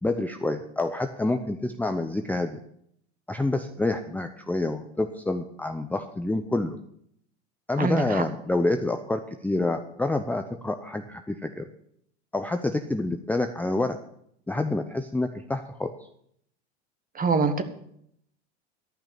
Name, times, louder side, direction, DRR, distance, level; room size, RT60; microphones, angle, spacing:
voice 1, 0.0-2.6 3.3-6.8 7.7-11.7 12.3-14.0 14.5-15.9, left 2 dB, 5° left, 7 dB, 0.6 m, -28 dB
voice 2, 7.8-8.2 17.1-17.6, right 4 dB, 25° right, 9 dB, 1.5 m, -24 dB
12.5 x 5.8 x 8.8 m, 0.71 s
hypercardioid pair, 95°, 33 cm